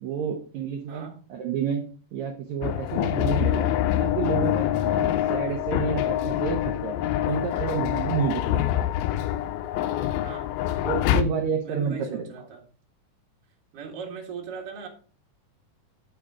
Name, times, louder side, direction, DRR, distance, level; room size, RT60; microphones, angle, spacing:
voice 1, 0.0-3.7 4.0-7.0 7.3-8.4 10.8-12.3, right 6 dB, 65° right, 4 dB, 1.9 m, -29 dB
sound 1, 2.6-11.2, left 12 dB, 90° left, 2.5 m, -25 dB
voice 2, 10.2-10.9 11.6-12.6 13.7-14.9, right 6 dB, 50° right, 0 dB, 2.3 m, -39 dB
9.8 x 5.2 x 4.9 m, 0.41 s
omnidirectional pair, 4.2 m